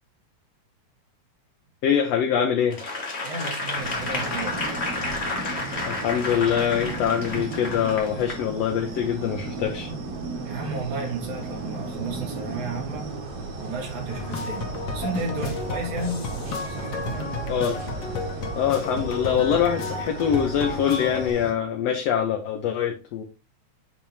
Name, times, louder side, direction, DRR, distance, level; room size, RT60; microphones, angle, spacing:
voice 1, 1.8-2.8 5.9-9.9 17.5-17.9 18.6-23.2, left 8 dB, 70° left, 1.7 m, -24 dB
Applause / Crowd, 2.7-8.4 9.0-9.1, left 3 dB, 35° left, 1.1 m, -31 dB
voice 2, 3.2-4.6 10.5-13.1 13.6-14.7 14.9-16.3 16.7-17.3, right 3 dB, 75° right, 3.3 m, -33 dB
sound 1, 3.8-21.5, right 3 dB, 60° right, 2.6 m, -35 dB
sound 2, 14.1-21.3, left 3 dB, 50° left, 1.5 m, -32 dB
8.8 x 3.5 x 4.3 m
omnidirectional pair, 3.5 m